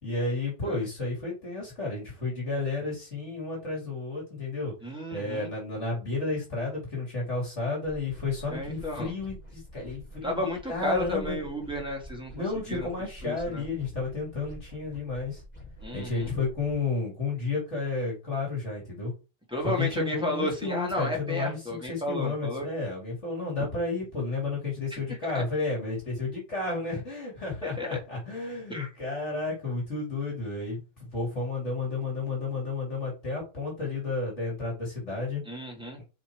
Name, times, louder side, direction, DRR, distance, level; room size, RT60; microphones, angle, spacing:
voice 1, 0.0-4.7 5.1-11.4 12.3-15.4 15.9-19.1 19.6-21.6 21.9-35.4 36.0-36.1, left 3 dB, 65° left, -2 dB, 3.4 m, -32 dB
voice 2, 4.8-5.5 8.5-9.1 10.2-12.9 13.2-13.6 15.8-16.3 19.5-22.7 24.9-25.0 25.3-25.4 27.6-28.0 28.7-28.9 35.5-36.0, left 1 dB, 5° right, 0 dB, 2.1 m, -33 dB
sound 1, 7.8-16.8, left 1 dB, 30° left, 3.7 m, -47 dB
5.6 x 5.0 x 4.7 m, 0.30 s
omnidirectional pair, 1.3 m